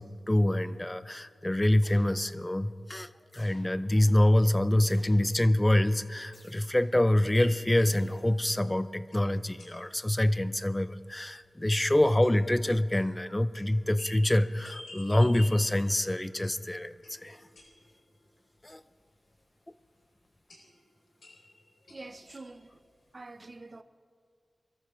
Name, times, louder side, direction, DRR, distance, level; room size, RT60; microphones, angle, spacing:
voice 1, 0.0-17.4 18.6-18.8, left 1 dB, 15° left, 0.5 m, -26 dB
sound 1, 1.8-2.5 3.3-4.0 4.8-5.5 6.3-7.0 7.8-8.5, left 1 dB, 45° left, 3.9 m, -58 dB
sound 2, 7.2-10.5 10.7-10.8 11.0-11.1 11.4-11.5 12.0-18.3 18.6-18.7 20.5-22.9, left 2 dB, 90° left, 3.8 m, -51 dB
voice 2, 21.9-22.8 23.1-23.8, right 2 dB, 40° right, 0.7 m, -46 dB
22.5 x 14.0 x 3.1 m
wide cardioid pair, 70°, 0 cm